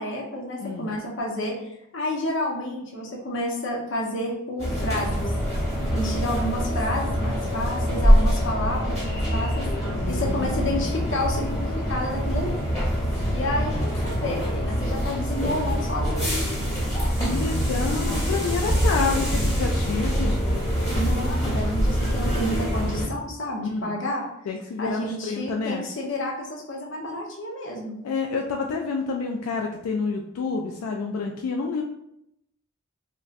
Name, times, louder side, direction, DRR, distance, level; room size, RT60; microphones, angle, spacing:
voice 1, 0.0-5.3 5.9-9.7 10.1-12.6 13.3-16.4 21.0-24.3 24.8-27.9, left 1 dB, 55° left, -2 dB, 0.7 m, -30 dB
voice 2, 0.6-0.9 9.9-11.1 17.2-20.4 23.6-23.9 24.5-25.8 28.0-31.8, left 4 dB, 85° left, 1 dB, 0.3 m, -29 dB
sound 1, 4.6-23.1, equal, 15° left, 1.1 m, -24 dB
3.8 x 2.1 x 2.4 m, 0.79 s
head